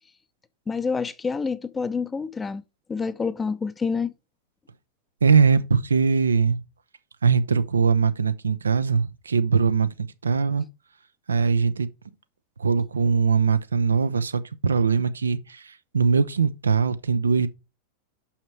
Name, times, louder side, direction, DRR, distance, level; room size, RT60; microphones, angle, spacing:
voice 1, 0.7-2.6 2.9-4.1, left 5 dB, 15° left, 0.6 m, -27 dB
voice 2, 5.2-6.6 7.2-10.7 11.3-11.9 12.6-17.5, right 5 dB, 75° right, 0.6 m, -21 dB
6.5 x 5.8 x 4.4 m
figure-of-eight pair, 90°, 0 cm